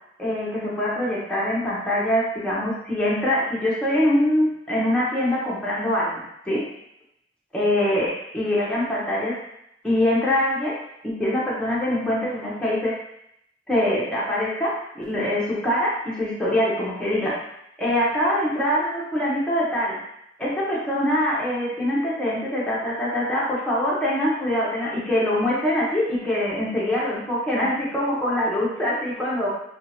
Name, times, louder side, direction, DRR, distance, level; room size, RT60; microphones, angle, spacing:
voice 1, 0.2-6.6 7.5-9.4 9.8-10.8 11.0-12.9 13.7-17.4 17.8-20.0 20.4-29.5, left 1 dB, 5° left, -7 dB, 0.9 m, -24 dB
4.6 x 2.4 x 2.8 m, 0.77 s
head